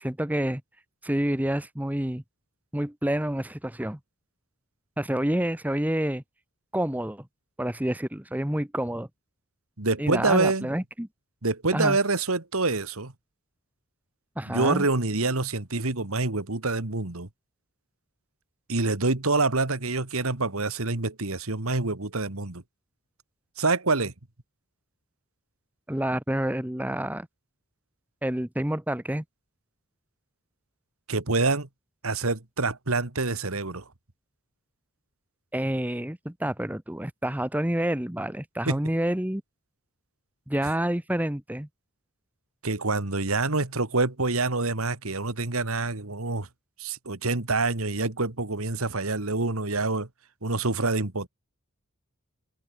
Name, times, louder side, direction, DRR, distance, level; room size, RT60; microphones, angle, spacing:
voice 1, 0.0-0.6 1.0-2.2 2.7-4.0 5.0-6.2 6.7-7.3 7.6-9.1 10.0-11.1 11.7-12.0 14.4-14.9 25.9-27.3 28.2-29.2 35.5-39.4 40.5-41.7, right 1 dB, 5° right, 0.9 m, -28 dB
voice 2, 9.8-10.7 11.4-13.1 14.5-17.3 18.7-22.6 23.6-24.1 31.1-31.7 32.0-33.8 38.7-38.8 42.6-46.5 46.8-50.1 50.4-51.3, right 3 dB, 75° right, 2.1 m, -26 dB
head